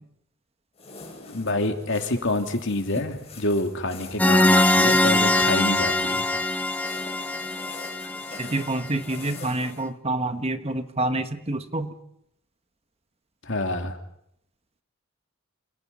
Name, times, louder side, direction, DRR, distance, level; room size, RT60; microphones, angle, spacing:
sound 1, 0.8-9.8, left 4 dB, 30° left, 5.6 m, -44 dB
voice 1, 1.3-6.3 13.5-14.0, left 2 dB, 60° left, 5 dB, 2.9 m, -27 dB
sound 2, 4.2-8.9, left 1 dB, 5° left, 1.1 m, -22 dB
voice 2, 8.4-11.9, right 2 dB, 30° right, 9 dB, 1.4 m, -27 dB
28.5 x 27.0 x 5.5 m, 0.75 s
head